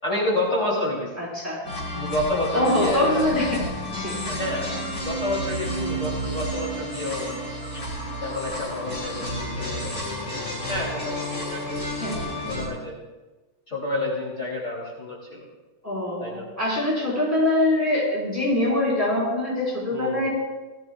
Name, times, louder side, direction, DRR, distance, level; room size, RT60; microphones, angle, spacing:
voice 1, 0.0-1.1 1.9-3.3 4.2-7.4 8.2-12.0 12.4-12.9 13.7-15.5 16.2-16.5 19.9-20.3, left 1 dB, 35° left, -7 dB, 3.5 m, -29 dB
voice 2, 1.2-1.9 2.5-3.6 4.0-4.2 11.9-12.3 15.8-20.3, left 1 dB, 5° right, -5 dB, 4.8 m, -24 dB
sound 1, 1.6-12.7, equal, 55° left, 6.1 m, -31 dB
19.5 x 14.5 x 2.4 m, 1.2 s
omnidirectional pair, 2.4 m